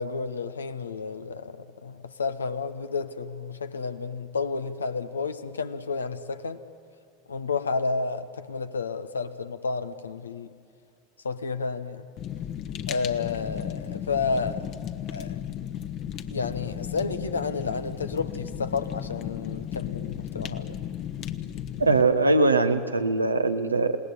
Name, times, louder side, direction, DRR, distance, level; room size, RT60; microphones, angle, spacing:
voice 1, 0.0-6.6 7.3-10.5 11.2-12.1 12.9-14.6 15.1-15.4 16.3-20.8, left 4 dB, 80° left, 10 dB, 1.2 m, -31 dB
Fire, 12.2-22.0, left 10 dB, 45° left, 1.3 m, -35 dB
voice 2, 21.8-24.0, right 3 dB, 90° right, 8 dB, 1.2 m, -21 dB
28.0 x 18.5 x 10.0 m, 2.2 s
figure-of-eight pair, 80°, 0 cm